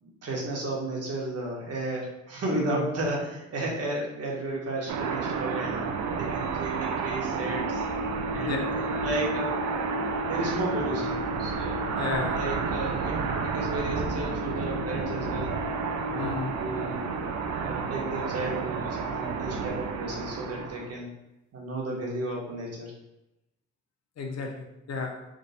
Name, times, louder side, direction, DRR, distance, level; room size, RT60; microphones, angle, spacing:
voice 1, 0.0-5.9 6.1-7.8 8.3-9.6 10.2-11.9 12.2-15.5 16.1-17.1 17.6-21.1 21.5-22.9, right 2 dB, 55° right, -2 dB, 1.4 m, -33 dB
voice 2, 2.5-2.8 8.4-8.6 12.0-12.4 16.2-16.6 24.2-25.2, left 4 dB, 60° left, 2 dB, 0.8 m, -32 dB
sound 1, 4.9-20.9, right 4 dB, 70° right, 0.6 m, -30 dB
3.7 x 2.5 x 4.1 m, 0.93 s
cardioid pair, 90°, 30 cm